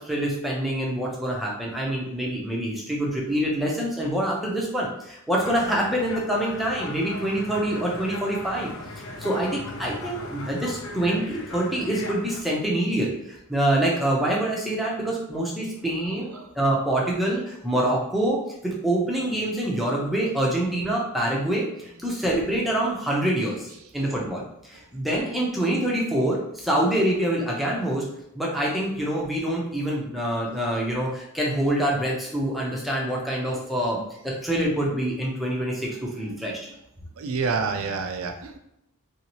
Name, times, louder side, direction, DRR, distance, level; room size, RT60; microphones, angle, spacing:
voice 1, 0.0-8.7 9.2-9.5 9.8-18.4 18.6-23.7 23.9-28.0 28.3-36.7, right 1 dB, ahead, -4 dB, 0.6 m, -26 dB
sound 1, 5.4-12.4, left 2 dB, 60° left, 0.4 m, -38 dB
voice 2, 16.1-16.5 33.5-33.7 36.5-36.6 37.2-38.6, right 4 dB, 65° right, 5 dB, 0.4 m, -29 dB
3.1 x 2.7 x 3.0 m, 0.81 s
head